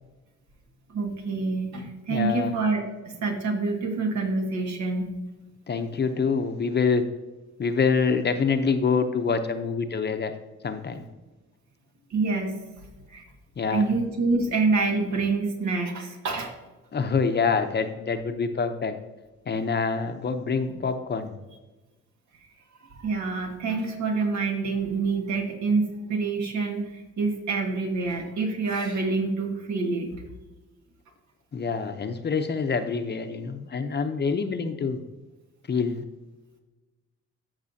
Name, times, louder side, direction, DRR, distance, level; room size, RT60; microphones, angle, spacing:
voice 1, 0.9-5.1 12.1-12.6 13.1-13.2 13.7-16.5 20.7-20.8 23.0-30.2, right 3 dB, 70° right, 2 dB, 1.8 m, -27 dB
voice 2, 2.1-2.5 5.7-7.0 7.6-10.3 10.6-11.0 13.6-13.9 16.9-18.9 19.5-21.3 31.5-35.0 35.7-36.0, left 5 dB, 35° left, 7 dB, 0.8 m, -26 dB
14.0 x 5.5 x 2.8 m, 1.1 s
cardioid pair, 90°, 30 cm